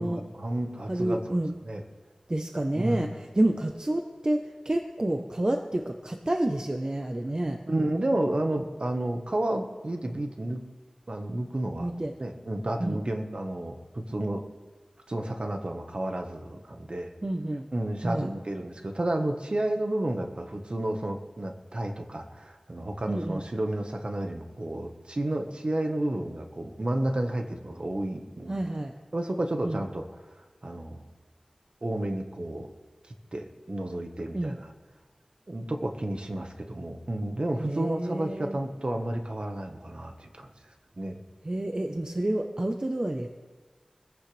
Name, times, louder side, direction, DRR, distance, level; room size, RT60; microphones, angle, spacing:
voice 1, 0.0-1.8 2.7-3.1 7.7-10.6 11.1-11.9 12.2-14.4 15.1-17.1 17.7-28.6 29.1-30.0 30.6-31.0 31.8-32.7 33.3-34.7 35.5-40.5 41.0-41.2, right 1 dB, 50° right, 4 dB, 1.4 m, -31 dB
voice 2, 0.9-1.5 2.3-7.6 11.8-12.1 12.8-13.0 17.2-17.7 18.0-18.3 23.1-23.4 28.5-28.9 29.6-29.8 34.3-34.6 37.6-38.6 41.4-43.3, right 1 dB, 35° right, 4 dB, 0.9 m, -29 dB
22.0 x 15.0 x 3.4 m, 1.4 s
wide cardioid pair, 50°, 2 cm